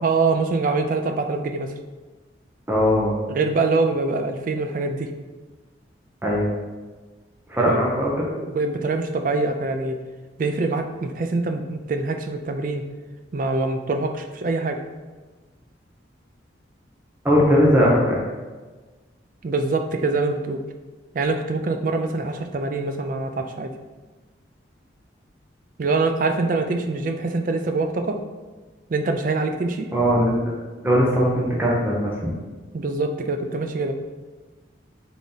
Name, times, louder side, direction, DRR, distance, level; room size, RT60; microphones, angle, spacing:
voice 1, 0.0-1.7 3.3-5.1 7.7-7.8 8.4-10.0 10.4-12.9 13.3-14.8 19.4-20.6 21.1-23.7 25.8-28.2 28.9-29.9 32.7-33.9, right 3 dB, 45° right, 6 dB, 0.3 m, -24 dB
voice 2, 2.7-3.1 6.2-6.5 7.5-8.3 17.2-18.2 29.9-30.4 30.8-32.3, equal, 10° right, -5 dB, 0.7 m, -19 dB
3.9 x 3.5 x 3.8 m, 1.3 s
head